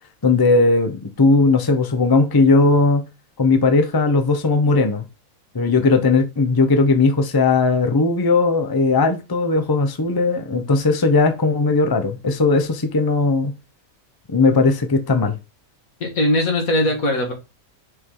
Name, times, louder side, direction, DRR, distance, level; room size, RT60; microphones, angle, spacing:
voice 1, 0.2-3.0 3.4-5.0 5.5-13.5 14.3-15.3, left 3 dB, 20° left, 0.7 m, -17 dB
voice 2, 16.0-17.3, left 1 dB, 75° left, 2.5 m, -20 dB
6.2 x 4.7 x 3.8 m
omnidirectional pair, 1.5 m